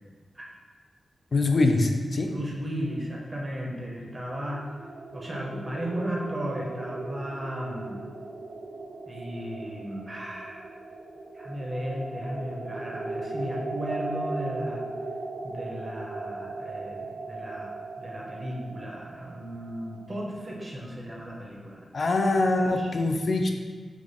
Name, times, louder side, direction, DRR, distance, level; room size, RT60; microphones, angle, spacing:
voice 1, 1.3-2.3 21.9-23.5, left 2 dB, 45° left, 4 dB, 0.4 m, -23 dB
voice 2, 2.2-4.7 5.1-8.0 9.1-10.7 11.3-14.8 15.4-17.0 17.3-21.8 22.8-23.1, equal, 25° right, -3 dB, 0.7 m, -35 dB
sound 1, 3.7-20.6, right 2 dB, 85° right, 0.5 m, -38 dB
4.8 x 2.4 x 3.9 m, 1.5 s
wide cardioid pair, 140°, 0 cm